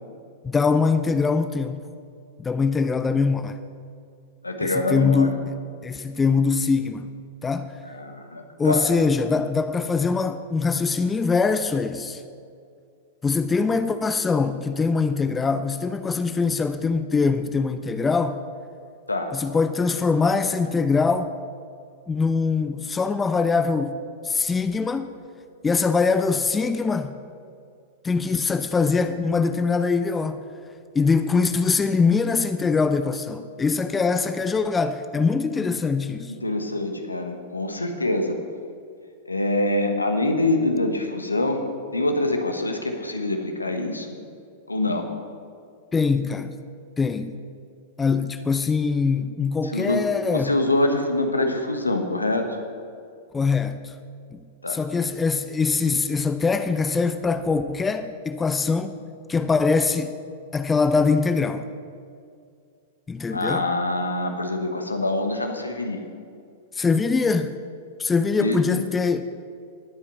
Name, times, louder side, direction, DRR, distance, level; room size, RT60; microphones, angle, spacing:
voice 1, 0.4-1.8 2.4-3.6 4.6-5.5 5.8-7.1 7.4-7.7 8.6-12.2 13.2-18.4 19.3-21.3 22.1-25.1 25.6-27.1 28.0-30.4 30.9-36.3 45.9-46.5 47.0-47.3 48.0-50.6 53.3-53.9 54.3-54.4 54.7-58.9 59.3-60.1 60.5-61.6 63.1-63.7 66.7-67.5 68.0-69.2, left 4 dB, 15° left, 0.5 m, -23 dB
voice 2, 4.4-5.3 7.9-8.9 19.1-19.3 36.4-38.4 39.2-41.6 41.9-44.2 44.7-45.1 49.6-50.0 50.3-52.6 54.6-54.8 63.3-66.1 68.4-68.9, left 2 dB, 85° left, 1.3 m, -25 dB
20.0 x 8.4 x 4.2 m
figure-of-eight pair, 95°, 0 cm